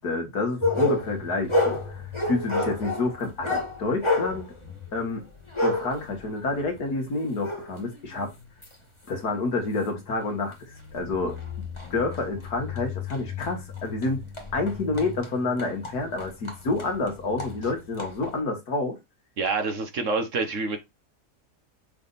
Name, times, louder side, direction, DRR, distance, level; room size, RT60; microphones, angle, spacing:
voice 1, 0.0-4.4 4.9-5.2 5.6-8.3 9.1-11.4 11.9-14.2 14.5-19.0, left 3 dB, 70° left, 2.2 m, -29 dB
sound 1, 0.6-8.8 9.3-9.4 10.0-10.1 10.5-18.4, left 2 dB, 20° left, 1.8 m, -31 dB
voice 2, 19.4-20.8, right 4 dB, 55° right, 1.2 m, -27 dB
6.6 x 3.5 x 4.1 m
omnidirectional pair, 1.7 m